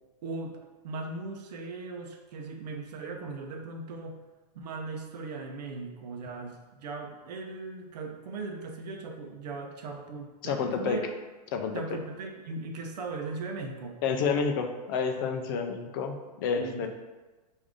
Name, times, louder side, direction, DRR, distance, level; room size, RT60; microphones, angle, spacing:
voice 1, 0.2-4.2 4.5-11.1 11.7-14.0 16.5-16.9, right 3 dB, 75° right, 2 dB, 0.7 m, -38 dB
voice 2, 10.4-11.0 11.5-11.8 14.0-16.9, left 5 dB, 35° left, 5 dB, 0.4 m, -29 dB
4.8 x 2.6 x 3.6 m, 1.2 s
supercardioid pair, 165°, 21 cm